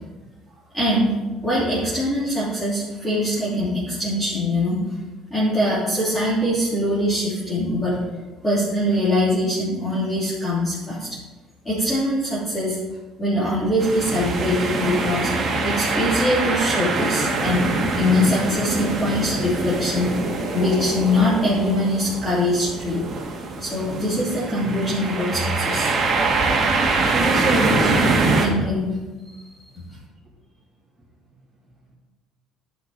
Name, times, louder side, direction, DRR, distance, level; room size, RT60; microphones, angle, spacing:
voice 1, 0.7-1.2 1.4-4.9 5.3-8.0 8.4-11.1 11.6-12.8 13.2-15.3 15.6-17.6 17.9-20.2 20.5-23.1 23.6-26.0 28.4-28.9, left 1 dB, 15° left, -10 dB, 3.0 m, -22 dB
sound 1, 13.8-28.5, right 3 dB, 35° right, 1.8 m, -24 dB
voice 2, 27.0-28.4 29.2-29.7, right 2 dB, 15° right, -10 dB, 3.1 m, -28 dB
11.5 x 6.0 x 4.2 m, 1.2 s
cardioid pair, 115°, 0 cm